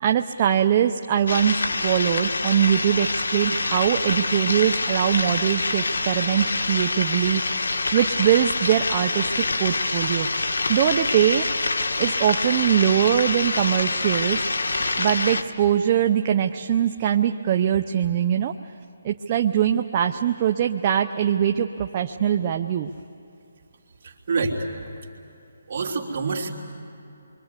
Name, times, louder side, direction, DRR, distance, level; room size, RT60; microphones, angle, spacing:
voice 1, 0.0-7.4 7.9-11.5 12.0-14.4 15.0-18.5 19.0-22.9, right 9 dB, 25° right, 5 dB, 0.6 m, -22 dB
sound 1, 1.3-15.4, left 3 dB, 90° left, 1.7 m, -26 dB
voice 2, 24.0-24.7 25.7-26.5, right 4 dB, 40° right, -1 dB, 3.1 m, -26 dB
28.0 x 24.0 x 8.2 m, 2.8 s
hypercardioid pair, 170°, 0 cm